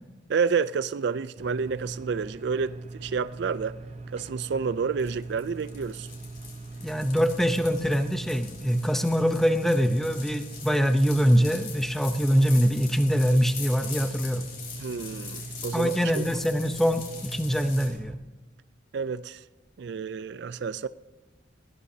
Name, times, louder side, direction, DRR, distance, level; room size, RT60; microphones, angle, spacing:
voice 1, 0.3-3.8 4.1-6.1 14.8-16.2 18.9-19.4 19.8-20.9, right 5 dB, 60° right, 0.4 m, -29 dB
sound 1, 1.4-18.2, right 2 dB, 35° right, 0.7 m, -41 dB
sound 2, 5.0-17.9, left 6 dB, 50° left, 4.9 m, -43 dB
voice 2, 6.8-14.4 15.7-18.1, equal, ahead, 0.7 m, -24 dB
21.0 x 17.0 x 2.8 m
head